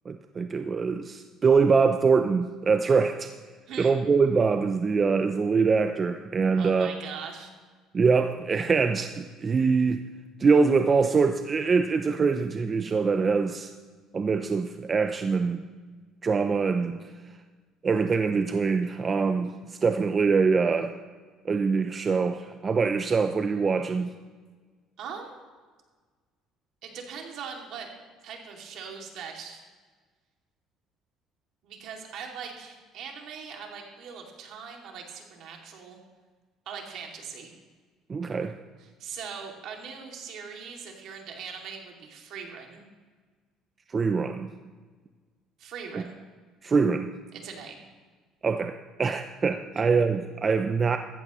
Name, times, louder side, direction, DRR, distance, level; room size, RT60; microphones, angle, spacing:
voice 1, 0.1-3.3 3.8-6.9 7.9-10.0 10.4-13.7 14.1-15.6 16.2-17.1 17.8-21.0 21.4-24.1 38.1-38.6 43.9-44.5 45.9-46.0 46.6-47.1 48.4-51.0, right 5 dB, 30° right, 7 dB, 0.5 m, -24 dB
voice 2, 6.6-7.5 25.0-25.4 26.8-27.9 28.2-29.6 31.6-36.0 36.7-37.5 38.8-42.8 45.6-46.2 47.4-47.8 49.8-49.9, right 6 dB, 65° right, 1 dB, 2.5 m, -41 dB
14.5 x 14.5 x 3.1 m, 1.4 s
cardioid pair, 120°, 0 cm